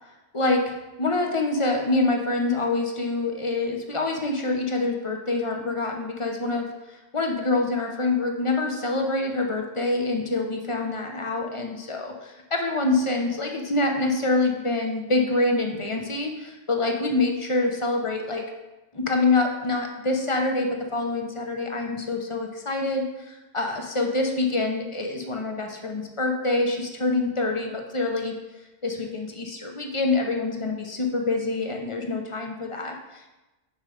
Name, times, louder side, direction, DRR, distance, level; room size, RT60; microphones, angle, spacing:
voice 1, 0.3-18.5 18.9-28.3 28.8-33.4, left 2 dB, 30° left, 2 dB, 0.6 m, -26 dB
6.4 x 4.4 x 4.9 m, 1.1 s
omnidirectional pair, 1.2 m